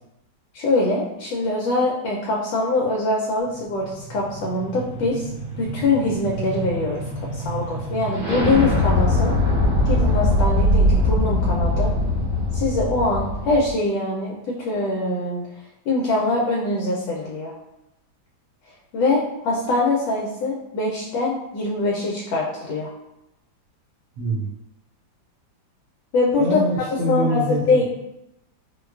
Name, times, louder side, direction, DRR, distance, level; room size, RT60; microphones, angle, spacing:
voice 1, 0.5-5.3 5.6-9.4 9.9-11.9 12.5-15.4 15.9-17.5 18.9-22.9 26.1-26.7 27.1-27.8, left 2 dB, 75° left, -3 dB, 1.2 m, -23 dB
sound 1, 3.5-13.7, left 1 dB, 85° right, 2.1 m, -22 dB
voice 2, 24.2-24.5 26.4-27.8, equal, 65° right, -5 dB, 0.9 m, -24 dB
4.2 x 2.2 x 2.3 m, 0.88 s
omnidirectional pair, 2.1 m